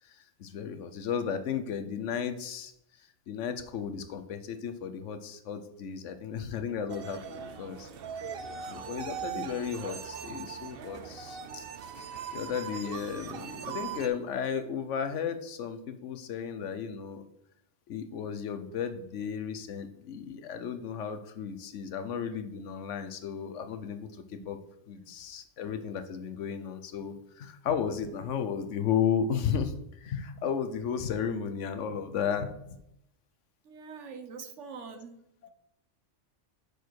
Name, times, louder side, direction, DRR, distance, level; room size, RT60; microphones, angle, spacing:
voice 1, 0.1-2.7 3.3-7.9 8.7-11.6 12.3-17.2 17.9-24.6 24.9-32.8, left 7 dB, 80° left, 9 dB, 1.1 m, -34 dB
sound 1, 6.9-14.1, right 7 dB, 55° right, 0.8 m, -40 dB
voice 2, 33.6-35.2, right 5 dB, 80° right, 9 dB, 1.2 m, -44 dB
7.0 x 6.3 x 4.6 m, 0.81 s
omnidirectional pair, 1.2 m